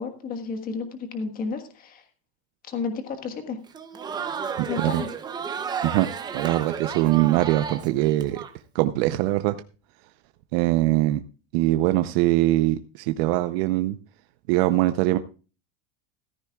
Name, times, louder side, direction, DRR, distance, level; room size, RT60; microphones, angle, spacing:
voice 1, 0.0-2.0 2.7-3.6 4.7-5.1, left 5 dB, 25° left, 7 dB, 1.4 m, -32 dB
Crowd, 3.7-8.5, right 6 dB, 15° right, 0.7 m, -33 dB
voice 2, 4.6-5.0 5.8-6.1 6.3-8.4 8.7-9.6 10.5-11.2 11.5-14.0 14.5-15.2, right 16 dB, 65° right, 9 dB, 0.7 m, -22 dB
15.0 x 14.0 x 2.3 m, 0.34 s
cardioid pair, 180°, 32 cm